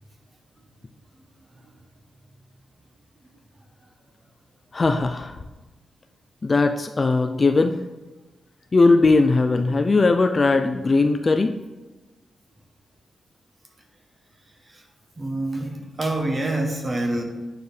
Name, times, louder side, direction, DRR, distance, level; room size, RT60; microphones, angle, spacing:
voice 1, 4.7-5.3 6.4-7.8 8.7-11.6, left 3 dB, 30° left, 7 dB, 0.3 m, -19 dB
voice 2, 15.2-17.2, right 1 dB, 25° right, 3 dB, 0.9 m, -26 dB
9.1 x 4.6 x 3.3 m, 1.2 s
wide cardioid pair, 140°, 0 cm